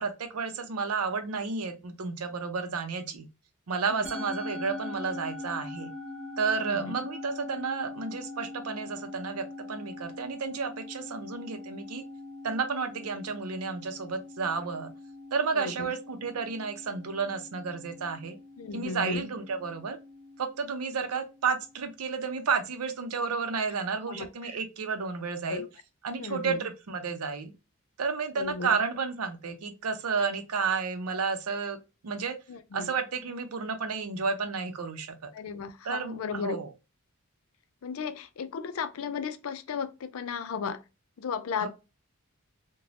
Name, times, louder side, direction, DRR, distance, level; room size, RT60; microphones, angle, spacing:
voice 1, 0.0-3.3 3.7-5.9 6.4-12.0 12.4-14.9 15.3-18.4 18.7-20.0 20.4-25.6 26.0-27.5 28.0-31.8 32.0-32.4 32.7-35.3 35.8-36.7 41.6-41.7, right 5 dB, 85° right, 0.6 m, -31 dB
Musical instrument, 4.0-22.5, left 2 dB, 5° right, 1.2 m, -43 dB
voice 2, 6.6-7.0 15.6-15.9 18.6-19.3 24.1-24.3 25.5-25.7 26.2-26.6 28.4-28.8 32.5-32.9 35.3-36.6 37.8-40.8 41.2-41.7, left 5 dB, 70° left, 0.4 m, -35 dB
3.2 x 2.2 x 2.4 m
head